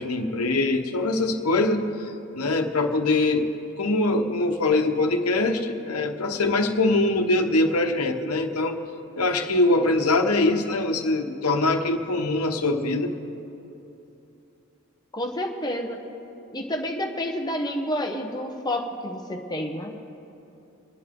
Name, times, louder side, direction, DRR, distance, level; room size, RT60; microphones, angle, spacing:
voice 1, 0.0-3.5 3.8-8.8 9.2-13.1, left 2 dB, 90° left, 5 dB, 1.1 m, -23 dB
voice 2, 15.1-16.0 16.5-20.0, left 1 dB, 20° left, 2 dB, 1.1 m, -29 dB
26.0 x 9.6 x 3.8 m, 2.9 s
head